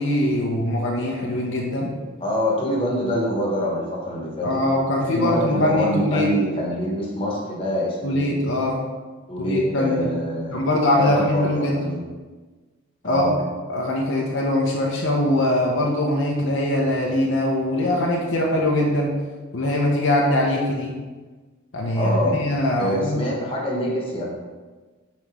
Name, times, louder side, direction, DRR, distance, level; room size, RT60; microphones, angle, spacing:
voice 1, 0.0-1.9 4.4-6.3 8.0-8.8 9.4-10.1 10.5-11.7 13.0-13.3 13.7-19.1 19.5-20.9 21.7-23.2, left 1 dB, 60° left, -2 dB, 0.8 m, -22 dB
voice 2, 2.2-4.6 5.1-8.5 9.3-10.6 11.0-12.0 13.0-13.4 22.0-22.4 22.8-24.3, equal, 25° left, -3 dB, 1.3 m, -25 dB
5.9 x 4.2 x 4.8 m, 1.3 s
head